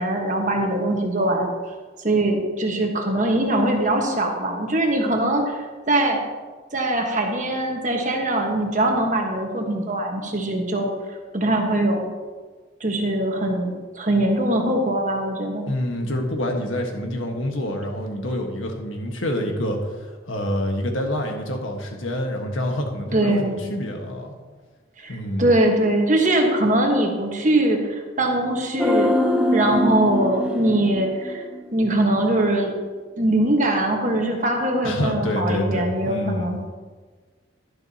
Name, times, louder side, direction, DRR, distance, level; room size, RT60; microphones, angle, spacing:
voice 1, 0.0-1.5 2.0-6.2 6.7-10.9 11.3-12.1 12.8-15.7 23.1-23.6 25.0-29.1 29.5-31.4 31.7-32.7 33.2-36.6, right 1 dB, 40° right, 2 dB, 1.4 m, -22 dB
voice 2, 15.7-24.3 25.1-25.5 34.8-36.6, left 1 dB, 85° left, 2 dB, 1.5 m, -27 dB
sound 1, 28.8-32.1 32.3-32.4, left 1 dB, 5° right, 0.8 m, -24 dB
11.5 x 11.5 x 2.9 m, 1.4 s
head